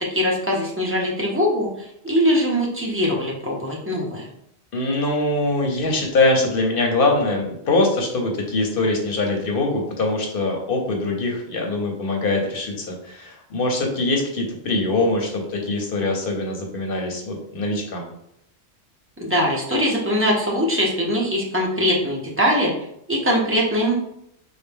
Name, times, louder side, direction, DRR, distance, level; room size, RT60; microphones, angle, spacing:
voice 1, 0.1-4.3 19.2-22.7 23.1-23.9, equal, 15° right, -3 dB, 0.8 m, -22 dB
voice 2, 4.7-18.1, left 2 dB, 60° left, 1 dB, 0.9 m, -23 dB
4.3 x 2.2 x 3.4 m, 0.76 s
omnidirectional pair, 1.1 m